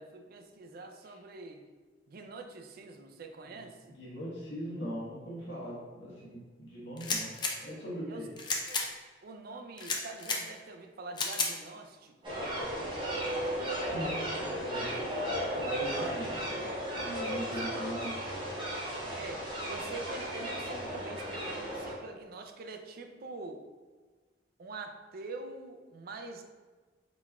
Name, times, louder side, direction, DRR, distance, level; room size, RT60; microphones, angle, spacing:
voice 1, 0.0-1.6 2.1-4.0 7.4-7.5 8.1-8.3 8.7-8.9 9.2-12.4 15.0-15.4 15.9-16.4 17.2-18.2 18.5-18.8 19.1-23.6 24.6-26.4, right 3 dB, 55° right, 5 dB, 0.4 m, -45 dB
voice 2, 3.9-7.3 7.6-8.3 13.8-14.9 15.5-16.3 16.8-18.2, equal, 75° left, -7 dB, 1.4 m, -40 dB
sound 1, 7.0-7.5 8.4-8.9 9.8-10.4 11.2-11.5, left 4 dB, 25° left, 0.5 m, -32 dB
sound 2, 12.2-21.9, equal, 25° right, 1.1 m, -35 dB
4.1 x 4.1 x 2.3 m, 1.3 s
head